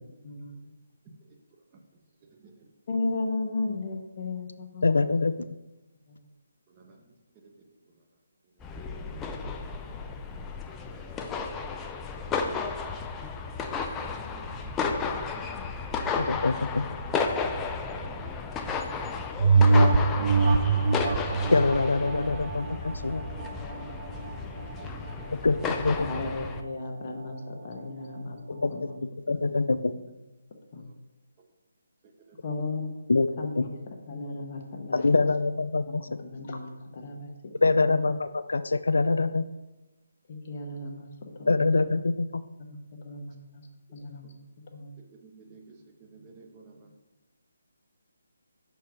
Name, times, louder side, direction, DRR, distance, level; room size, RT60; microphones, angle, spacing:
voice 1, 0.2-0.6 2.9-5.3 6.1-6.3 25.9-29.0 29.3-30.2 30.7-30.8 32.4-33.0 33.4-33.8 34.1-35.3 35.9-37.3 37.6-38.0 40.3-42.1 42.6-44.4 44.7-44.9, left 2 dB, 40° left, 1 dB, 1.2 m, -36 dB
voice 2, 4.8-5.3 16.2-16.8 21.5-23.2 25.4-26.0 28.6-28.7 29.3-29.9 33.1-33.3 33.6-33.7 34.9-36.0 37.6-39.4 41.5-42.4, left 3 dB, 80° left, 12 dB, 0.3 m, -24 dB
voice 3, 6.7-7.0 7.4-7.5 9.1-9.5 9.8-10.1 11.4-11.5 13.9-15.7 17.9-18.3 18.6-18.9 24.2-24.9 25.1-25.2 32.2-32.4 45.1-46.9, right 4 dB, 25° right, 2 dB, 1.0 m, -53 dB
sound 1, 8.6-26.6, left 4 dB, 10° left, 0.4 m, -33 dB
sound 2, 19.4-24.3 24.8-24.9, right 3 dB, 50° right, 0.4 m, -23 dB
5.9 x 4.5 x 5.3 m, 1.1 s
figure-of-eight pair, 155°, 0 cm